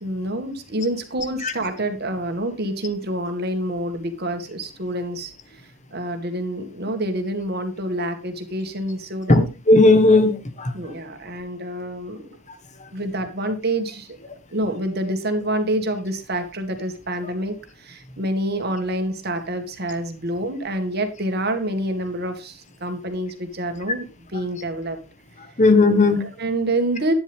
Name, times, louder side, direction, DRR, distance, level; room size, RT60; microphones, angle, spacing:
voice 1, 0.0-5.3 5.9-9.5 10.7-12.2 12.9-14.1 14.5-25.0 26.2-27.1, right 1 dB, 50° right, 6 dB, 2.1 m, -27 dB
voice 2, 9.3-10.7 25.6-26.2, left 2 dB, 35° left, 9 dB, 1.5 m, -15 dB
11.5 x 10.0 x 3.6 m, 0.30 s
head